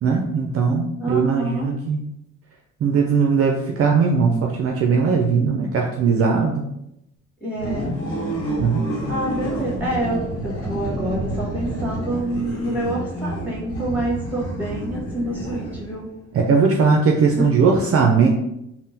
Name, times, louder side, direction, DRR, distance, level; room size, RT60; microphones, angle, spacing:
voice 1, 0.0-2.0 2.8-6.6 8.6-8.9 16.3-18.3, right 5 dB, 50° right, 1 dB, 0.4 m, -19 dB
voice 2, 1.0-1.7 7.4-7.9 9.1-16.1 17.4-17.5, right 1 dB, 5° right, -5 dB, 1.5 m, -27 dB
sound 1, 7.5-16.1, right 1 dB, 50° left, 1.0 m, -29 dB
3.6 x 2.1 x 2.7 m, 0.84 s
cardioid pair, 90°, 30 cm